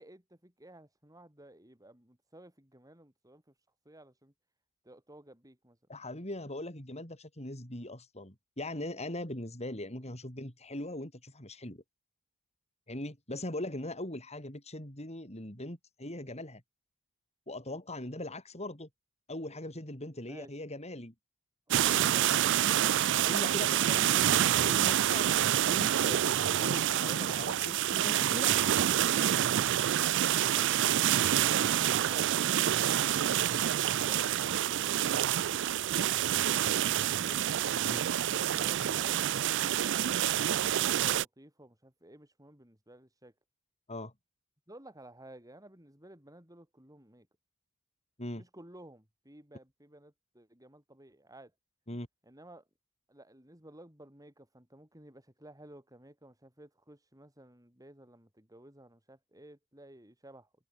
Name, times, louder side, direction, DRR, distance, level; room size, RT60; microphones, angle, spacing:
voice 1, 0.0-3.5 3.9-4.3 4.8-5.8 20.3-20.5 38.3-43.3 44.7-47.3 48.3-51.5 52.2-52.6 53.1-60.5, right 1 dB, 15° right, 7.2 m, -54 dB
voice 2, 5.9-11.8 12.9-16.6 17.5-18.9 19.3-21.1 23.2-28.6 30.5-30.8 37.8-38.1 43.9-44.1 48.2-48.4 51.9-52.1, left 1 dB, 30° left, 6.0 m, -40 dB
sound 1, 21.7-41.3, right 11 dB, 55° right, 0.4 m, -27 dB
head